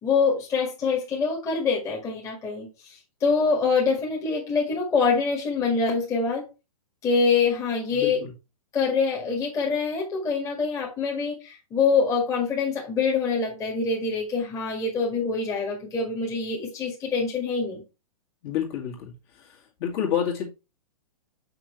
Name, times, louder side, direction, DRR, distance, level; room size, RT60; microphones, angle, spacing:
voice 1, 0.0-6.4 7.0-8.2 8.7-17.8, left 4 dB, 15° left, -3 dB, 1.9 m, -25 dB
voice 2, 7.9-8.3 18.4-20.5, left 9 dB, 40° left, -1 dB, 2.2 m, -29 dB
6.6 x 6.0 x 3.2 m, 0.28 s
hypercardioid pair, 150°, 20 cm